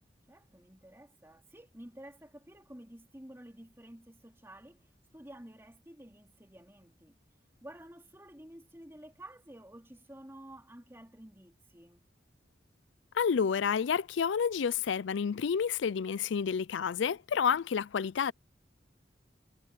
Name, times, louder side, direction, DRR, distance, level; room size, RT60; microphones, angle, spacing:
voice 1, 0.3-4.9 5.1-7.2 7.6-12.1, right 1 dB, 15° right, 3.2 m, -51 dB
voice 2, 13.1-18.3, left 7 dB, 80° left, 0.4 m, -29 dB
head